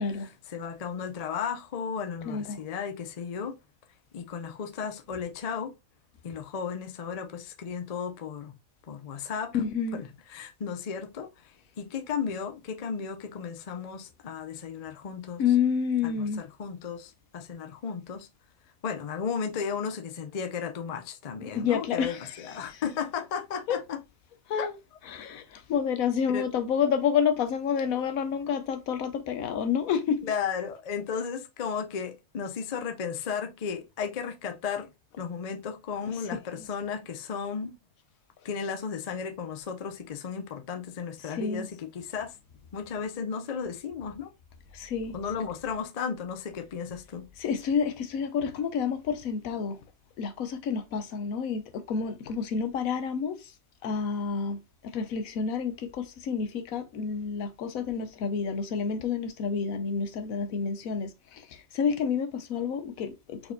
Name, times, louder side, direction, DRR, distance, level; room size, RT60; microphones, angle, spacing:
voice 1, 0.0-3.6 4.1-5.8 6.2-8.6 8.9-9.6 9.9-10.0 10.3-15.4 16.0-18.3 18.8-24.0 24.6-24.7 26.3-26.5 30.2-34.9 35.2-37.8 38.4-42.4 42.7-44.3 45.1-47.3, left 6 dB, 55° left, 0.4 m, -34 dB
voice 2, 2.2-2.6 9.5-10.0 15.4-16.4 21.4-22.8 23.7-23.8 24.5-24.8 25.1-30.2 36.5-36.7 41.3-41.7 44.7-45.2 47.4-49.8 50.2-53.4 53.8-63.5, left 6 dB, 80° left, 1.2 m, -29 dB
4.4 x 4.3 x 2.6 m
omnidirectional pair, 1.5 m